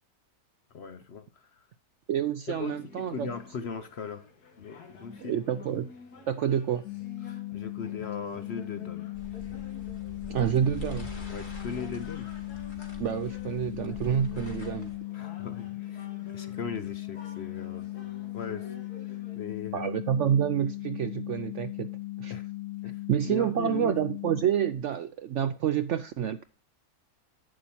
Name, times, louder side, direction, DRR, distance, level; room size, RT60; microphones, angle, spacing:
voice 1, 0.7-1.6 2.5-4.3 4.6-5.4 5.8-5.9 7.2-9.1 11.3-12.3 15.1-17.9 18.3-18.8 19.1-19.9 22.3-22.5 22.8-24.0, left 6 dB, 55° left, 0.8 m, -39 dB
voice 2, 2.1-3.3 5.2-5.9 6.3-6.8 10.3-11.1 13.0-14.9 19.7-21.9 22.2-22.3 23.1-26.4, right 9 dB, 70° right, 0.7 m, -28 dB
sound 1, 2.5-19.4, left 4 dB, 75° left, 2.0 m, -50 dB
sound 2, 6.8-24.4, left 18 dB, 90° left, 2.6 m, -38 dB
sound 3, 9.1-15.0, left 1 dB, 30° left, 2.2 m, -44 dB
11.0 x 8.7 x 2.7 m
omnidirectional pair, 1.7 m